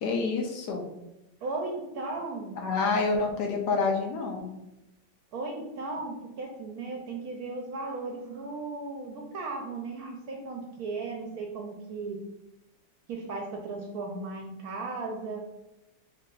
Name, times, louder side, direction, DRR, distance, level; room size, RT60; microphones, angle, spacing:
voice 1, 0.0-0.9 2.6-4.5, left 4 dB, 75° left, 2 dB, 1.1 m, -28 dB
voice 2, 1.4-2.6 5.3-12.2 13.1-15.5, right 3 dB, 70° right, 1 dB, 1.0 m, -36 dB
4.6 x 2.7 x 2.4 m, 0.91 s
omnidirectional pair, 1.9 m